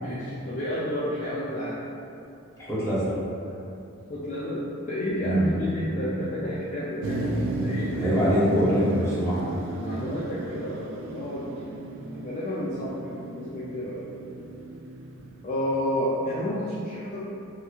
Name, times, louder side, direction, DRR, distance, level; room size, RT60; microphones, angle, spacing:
voice 1, 0.0-1.8 4.1-8.1 9.0-9.1 9.8-11.5 12.1-14.1 15.4-17.3, equal, 35° left, -8 dB, 0.4 m, -31 dB
voice 2, 2.6-3.1 5.2-5.4 8.0-9.4, equal, 15° left, -10 dB, 0.8 m, -23 dB
Motor vehicle (road), 7.0-16.0, right 2 dB, 65° right, 0.3 m, -34 dB
3.5 x 3.0 x 2.3 m, 2.7 s
head